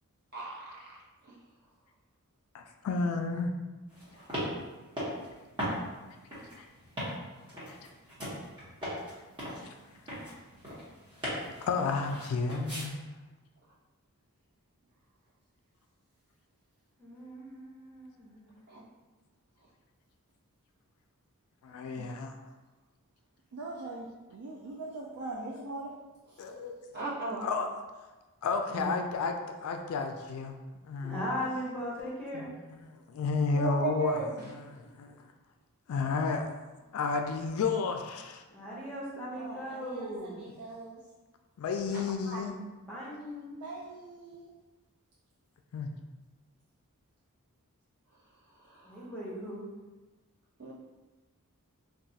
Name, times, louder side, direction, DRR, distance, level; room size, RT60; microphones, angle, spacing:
voice 1, 2.5-3.5 6.6-6.7 7.7-7.8 11.7-13.1 21.6-22.3 26.4-26.8 27.4-27.7 28.4-30.6 30.8-31.2 32.3-35.2 35.9-36.5 36.9-38.4 41.6-42.6 45.7-45.9, left 4 dB, 70° left, 6 dB, 0.3 m, -32 dB
sound 1, 3.9-12.9, equal, 20° right, 1.0 m, -39 dB
voice 2, 17.0-18.5 28.7-29.0 31.0-32.5 38.5-40.4 42.9-43.6 48.8-49.7, equal, 5° left, -6 dB, 0.8 m, -38 dB
voice 3, 23.5-25.9 26.3-26.5 35.9-36.1 39.3-41.0 43.5-44.5, right 2 dB, 85° right, -2 dB, 0.4 m, -42 dB
voice 4, 26.9-27.5 33.5-34.2 42.3-42.4 50.6-50.7, right 5 dB, 45° right, -7 dB, 0.9 m, -34 dB
2.4 x 2.3 x 3.9 m, 1.2 s
head